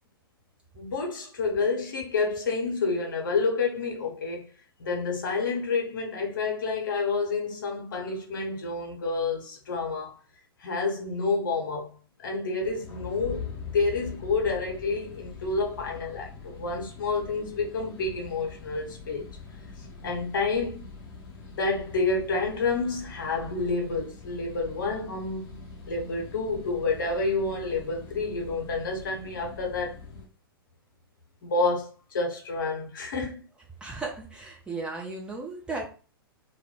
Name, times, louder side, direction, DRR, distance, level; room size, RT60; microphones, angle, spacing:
voice 1, 0.7-4.5 4.8-10.1 10.6-11.9 12.2-19.2 20.0-20.8 21.6-25.6 25.9-29.9 31.4-33.4, left 3 dB, 55° left, 0.8 m, -29 dB
sound 1, 12.6-30.3, left 4 dB, 25° left, 0.7 m, -43 dB
voice 2, 33.8-35.9, right 3 dB, 10° right, 0.5 m, -35 dB
2.3 x 2.1 x 3.6 m
figure-of-eight pair, 105°, 13 cm